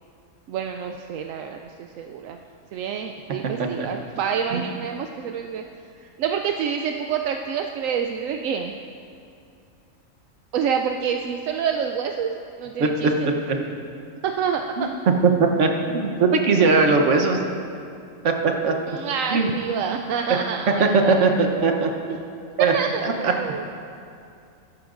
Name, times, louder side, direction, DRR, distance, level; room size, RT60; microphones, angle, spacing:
voice 1, 0.5-2.4 2.7-5.6 6.0-8.7 10.5-13.3 14.2-14.9 18.9-21.1 22.7-23.7, right 7 dB, 85° right, 4 dB, 1.0 m, -27 dB
voice 2, 15.4-17.4 18.2-18.7 19.3-19.5 20.3-20.4 20.8-21.9 22.6-22.7 23.0-23.3, right 4 dB, 70° right, 3 dB, 1.3 m, -19 dB
15.5 x 13.5 x 2.6 m, 2.5 s
omnidirectional pair, 1.3 m